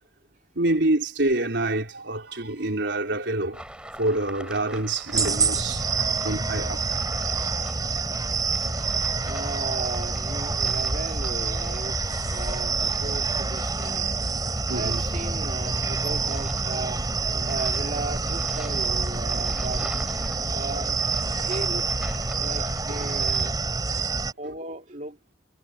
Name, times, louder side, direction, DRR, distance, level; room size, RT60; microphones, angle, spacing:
voice 1, 0.6-3.6 4.0-5.9 6.2-6.8 14.3-15.0 21.3-21.5 22.9-23.0, right 2 dB, 80° right, 3.8 m, -27 dB
sound 1, 3.5-23.5, equal, 5° right, 4.8 m, -39 dB
sound 2, 5.1-24.3, right 4 dB, 20° right, 4.9 m, -27 dB
voice 2, 9.2-14.1 14.7-17.0 17.4-20.0 20.5-21.0 21.5-21.9 22.4-23.6 24.4-25.2, right 2 dB, 45° right, 2.6 m, -36 dB
head